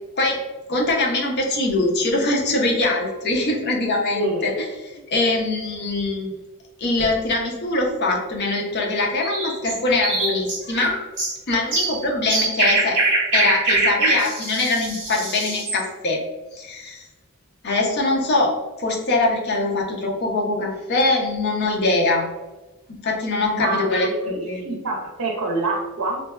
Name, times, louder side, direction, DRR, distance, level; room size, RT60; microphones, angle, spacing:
voice 1, 0.7-6.3 6.8-11.0 11.5-13.0 13.3-16.2 16.5-17.1 17.6-22.3 22.9-24.6, left 2 dB, 50° left, 0 dB, 0.5 m, -23 dB
voice 2, 4.1-4.5 23.5-26.2, right 2 dB, 85° right, 1 dB, 0.6 m, -26 dB
sound 1, 9.2-15.8, right 2 dB, 55° right, 0.9 m, -23 dB
2.5 x 2.2 x 2.2 m, 1.1 s
head